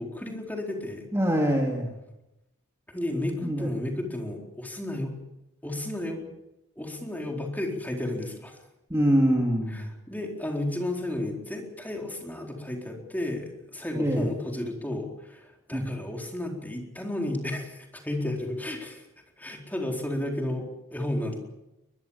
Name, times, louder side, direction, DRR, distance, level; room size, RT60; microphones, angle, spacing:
voice 1, 0.0-1.1 2.9-5.2 5.6-6.3 6.8-8.6 9.7-19.1 19.4-21.4, left 1 dB, 10° left, 1 dB, 4.2 m, -33 dB
voice 2, 1.1-1.9 3.4-3.7 8.9-9.8 14.0-14.3 15.7-15.8, equal, 10° right, 0 dB, 3.0 m, -24 dB
22.5 x 22.0 x 7.3 m, 0.93 s
head